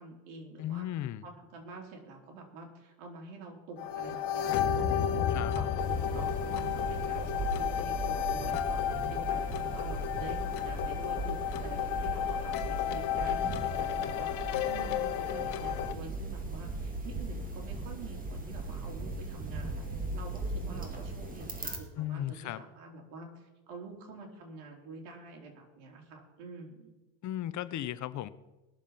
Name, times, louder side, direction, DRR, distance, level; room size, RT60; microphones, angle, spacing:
voice 1, 0.0-0.9 1.2-4.5 4.8-8.8 9.1-26.9, right 3 dB, 90° right, 1 dB, 3.6 m, -47 dB
voice 2, 0.6-1.2 5.3-5.5 22.0-22.6 27.2-28.3, left 12 dB, 45° left, 15 dB, 0.8 m, -35 dB
sound 1, 3.8-15.9, left 9 dB, 75° left, 1.4 m, -32 dB
sound 2, 5.8-21.8, right 2 dB, 20° right, 2.2 m, -38 dB
20.0 x 7.2 x 5.7 m, 1.1 s
cardioid pair, 125°, 41 cm